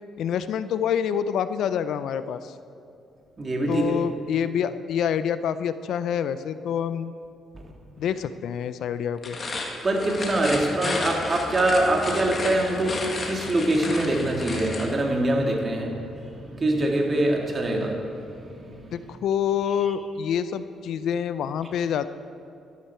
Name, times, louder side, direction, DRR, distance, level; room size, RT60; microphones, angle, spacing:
voice 1, 0.2-2.5 3.7-7.1 8.0-9.4 18.9-22.1, left 8 dB, 75° left, 13 dB, 0.5 m, -27 dB
voice 2, 3.4-4.0 9.8-18.9, right 1 dB, 35° right, 0 dB, 1.9 m, -24 dB
sound 1, 9.1-14.9, left 3 dB, 40° left, 1.9 m, -33 dB
12.5 x 11.5 x 4.4 m, 2.6 s
cardioid pair, 90°, 0 cm